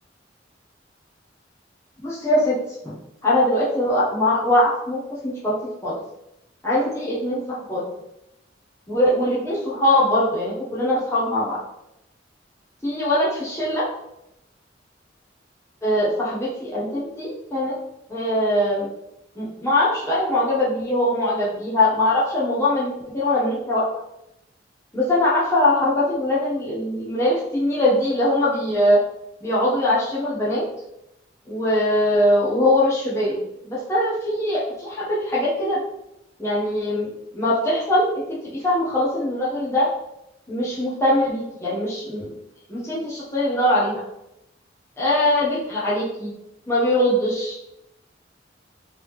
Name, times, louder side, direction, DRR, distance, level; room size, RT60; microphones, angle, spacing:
voice 1, 2.0-2.6 2.8-3.0 3.2-5.5 5.8-5.9 6.6-7.8 8.9-11.6 12.8-13.9 15.8-17.8 18.1-18.9 19.4-23.8 24.9-29.0 29.4-30.6 31.5-33.4 33.7-35.8 36.4-38.2 38.5-39.9 40.5-42.3 42.7-44.0 45.0-46.3 46.7-47.6, left 1 dB, 15° left, -8 dB, 0.9 m, -21 dB
3.7 x 3.2 x 3.3 m, 0.85 s
head